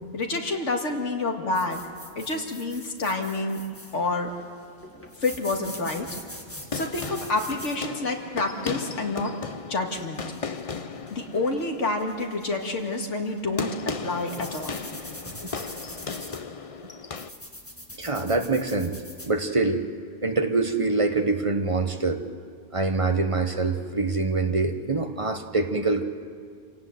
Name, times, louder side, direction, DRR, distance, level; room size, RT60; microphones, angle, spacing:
voice 1, 0.1-1.8 2.2-3.6 3.9-4.3 5.2-6.1 6.7-9.4 9.7-10.2 11.1-14.9, left 2 dB, 70° left, 2 dB, 2.4 m, -28 dB
sound 1, 1.5-19.3, left 1 dB, 10° left, 1.9 m, -44 dB
sound 2, 6.4-17.3, left 5 dB, 35° left, 0.6 m, -36 dB
voice 2, 18.0-18.9 19.2-19.8 20.2-22.2 22.7-26.0, right 3 dB, 25° right, 6 dB, 1.1 m, -24 dB
26.5 x 17.5 x 7.9 m, 2.1 s
omnidirectional pair, 1.3 m